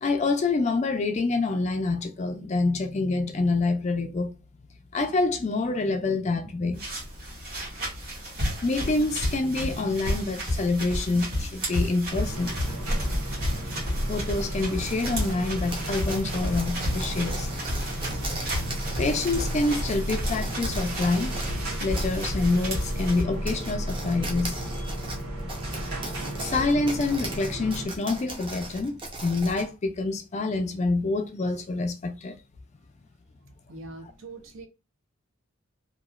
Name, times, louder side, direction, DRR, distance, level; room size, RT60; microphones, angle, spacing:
voice 1, 0.0-4.3 4.9-6.8 8.6-12.6 14.1-17.5 19.0-21.4 21.8-24.6 26.4-32.3, left 3 dB, 30° left, 0.3 m, -27 dB
sound 1, 6.7-23.2, equal, 45° right, 1.5 m, -32 dB
sound 2, 12.1-27.9, equal, 85° right, 1.1 m, -33 dB
sound 3, 14.7-21.6 22.0-22.3 22.8-22.9 23.3-29.7, right 2 dB, 25° right, 0.5 m, -38 dB
voice 2, 33.7-34.7, right 2 dB, 70° right, 0.6 m, -42 dB
2.9 x 2.3 x 2.3 m
head